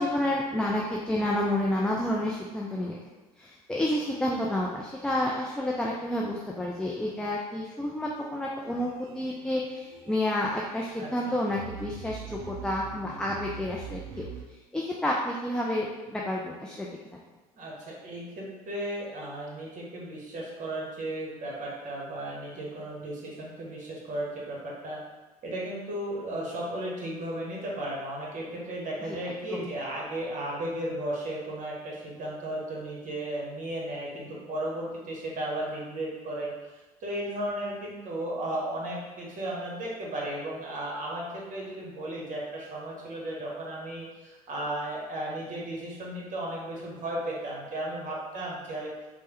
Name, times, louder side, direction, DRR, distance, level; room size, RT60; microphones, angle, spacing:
voice 1, 0.0-3.0 3.4-14.3 14.7-16.9 29.1-29.2 29.5-29.7, left 1 dB, 5° left, -3 dB, 0.3 m, -30 dB
sound 1, 8.6-14.4, right 6 dB, 80° right, 0.5 m, -44 dB
voice 2, 11.0-11.3 17.6-25.0 25.4-36.5 37.0-48.9, right 1 dB, 40° right, -3 dB, 1.0 m, -35 dB
3.2 x 2.1 x 2.9 m, 1.2 s
hypercardioid pair, 65°, 20 cm